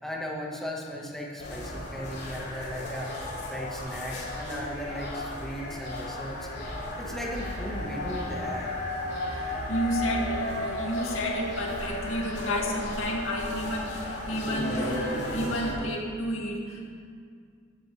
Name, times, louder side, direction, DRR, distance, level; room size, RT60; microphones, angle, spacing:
voice 1, 0.0-3.1 3.5-6.5 7.0-8.7, equal, ahead, -3 dB, 1.5 m, -36 dB
sound 1, 1.4-15.7, left 1 dB, 55° left, 3.2 m, -34 dB
Wind instrument woodwind instrument, 7.0-12.2, right 5 dB, 85° right, 0.9 m, -43 dB
voice 2, 9.3-16.9, equal, 90° left, -2 dB, 2.2 m, -31 dB
15.0 x 12.0 x 3.3 m, 2.1 s
head